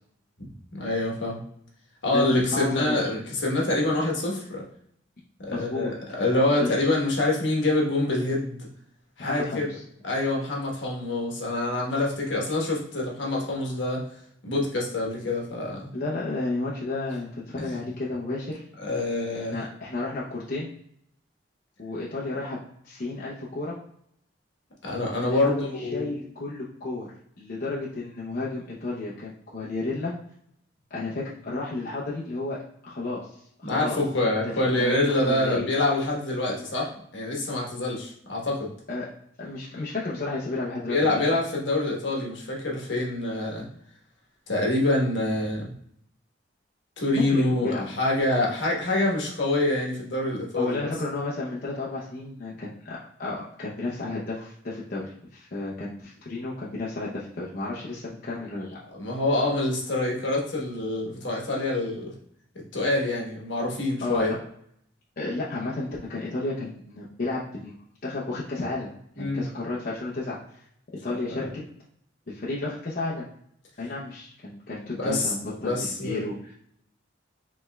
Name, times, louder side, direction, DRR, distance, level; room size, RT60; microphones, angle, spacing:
voice 1, 0.4-1.4 2.0-4.6 5.4-8.7 9.2-9.7 10.0-14.0 14.4-15.9 17.6-17.8 18.8-19.6 24.8-26.1 33.6-38.7 40.9-43.6 44.5-45.7 47.0-50.8 58.9-62.1 62.7-64.3 69.2-69.4 71.3-71.4 75.0-75.3 75.6-76.3, left 2 dB, 75° left, -2 dB, 1.2 m, -26 dB
voice 2, 2.1-3.0 5.5-5.9 6.6-6.8 9.2-9.8 15.9-18.6 19.4-20.7 21.8-22.6 22.8-23.8 25.2-30.1 30.9-34.0 34.2-35.7 38.9-39.1 39.4-41.2 47.1-47.8 50.6-58.8 64.0-64.4 65.2-67.7 68.0-68.9 69.2-70.6 71.0-71.6 72.3-73.3 73.8-76.5, left 2 dB, 50° left, -6 dB, 0.7 m, -32 dB
5.2 x 3.2 x 2.3 m, 0.69 s
head